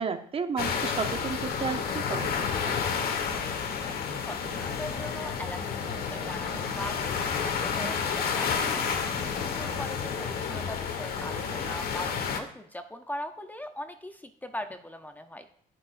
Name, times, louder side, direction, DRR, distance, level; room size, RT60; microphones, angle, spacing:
voice 1, 0.0-2.8, right 5 dB, 35° right, 7 dB, 0.9 m, -33 dB
sound 1, 0.6-12.4, left 6 dB, 65° left, 1.4 m, -30 dB
voice 2, 4.3-8.9 9.5-15.4, left 1 dB, 10° left, 7 dB, 0.7 m, -40 dB
17.5 x 6.5 x 2.6 m, 0.64 s
cardioid pair, 110°, 17 cm